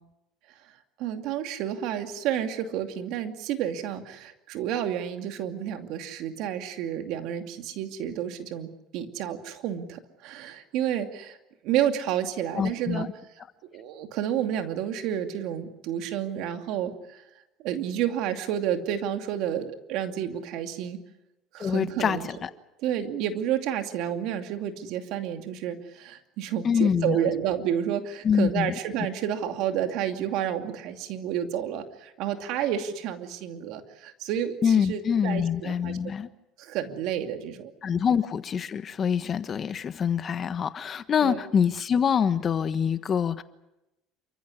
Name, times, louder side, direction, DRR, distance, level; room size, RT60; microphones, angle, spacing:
voice 1, 1.0-11.4 11.6-13.1 13.7-17.2 17.6-21.0 21.5-22.3 22.8-36.1 36.6-38.0 41.2-41.4, right 10 dB, 70° right, 2.5 m, -30 dB
voice 2, 12.5-13.1 21.6-22.5 26.6-27.2 28.2-28.7 34.6-36.3 37.8-43.4, left 7 dB, 35° left, 1.3 m, -25 dB
28.0 x 15.0 x 9.8 m
supercardioid pair, 105°, 0 cm